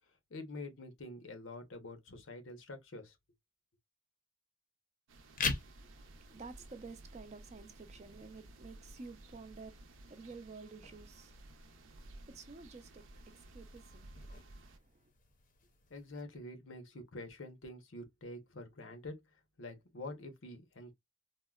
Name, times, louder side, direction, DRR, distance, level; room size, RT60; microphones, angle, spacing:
voice 1, 0.3-3.2 15.9-19.2 19.6-20.9, left 2 dB, 90° left, 0.8 m, -47 dB
sound 1, 5.1-14.8, right 1 dB, 80° right, 0.6 m, -55 dB
sound 2, 5.2-16.2, left 4 dB, 45° left, 0.6 m, -46 dB
voice 2, 5.8-15.1, right 4 dB, 35° right, 0.5 m, -52 dB
3.6 x 2.1 x 2.3 m
head